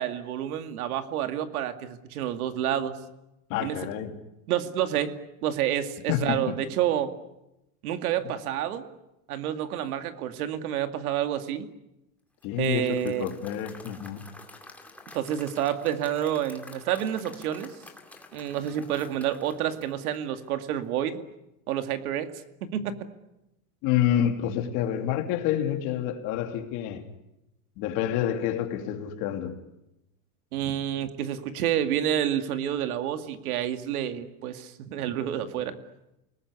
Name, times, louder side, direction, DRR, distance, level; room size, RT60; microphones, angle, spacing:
voice 1, 0.0-3.0 3.6-3.8 4.5-5.1 5.4-7.1 7.8-8.9 9.3-11.7 12.6-13.3 15.1-17.7 18.3-21.2 21.7-22.3 22.6-23.0 30.5-35.8, right 10 dB, 80° right, 2.5 m, -29 dB
voice 2, 3.5-4.2 6.1-6.5 12.4-14.3 23.8-27.0 27.8-29.6, left 10 dB, 45° left, 3.0 m, -28 dB
Applause / Crowd, 12.4-20.6, left 2 dB, 5° left, 2.3 m, -49 dB
29.0 x 20.0 x 9.8 m
supercardioid pair, 160°, 43 cm